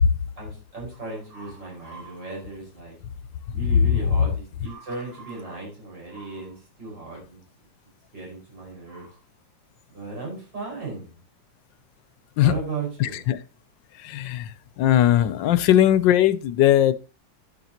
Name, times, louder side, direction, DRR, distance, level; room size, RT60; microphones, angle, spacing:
voice 1, 0.4-3.0 3.5-7.4 8.1-9.1 9.9-11.1 12.4-13.2, right 3 dB, 70° right, 5.9 m, -36 dB
voice 2, 13.0-13.4 14.1-14.4 14.8-16.9, left 12 dB, 80° left, 1.4 m, -19 dB
11.0 x 9.3 x 2.9 m
omnidirectional pair, 2.0 m